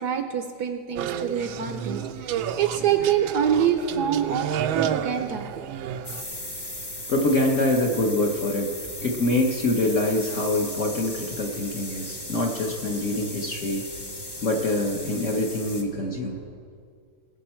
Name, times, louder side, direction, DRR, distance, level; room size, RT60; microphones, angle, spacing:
voice 1, 0.0-5.7, right 8 dB, 70° right, 7 dB, 1.0 m, -26 dB
sound 1, 1.0-6.2, right 9 dB, 85° right, 1.4 m, -31 dB
sound 2, 1.4-16.4, right 4 dB, 85° left, 4.3 m, -46 dB
sound 3, 6.0-15.8, left 1 dB, 25° left, 0.5 m, -37 dB
voice 2, 7.1-8.7 9.0-13.8 14.4-16.4, left 1 dB, 50° left, 1 dB, 1.0 m, -25 dB
20.0 x 6.8 x 4.3 m, 2.1 s
omnidirectional pair, 2.1 m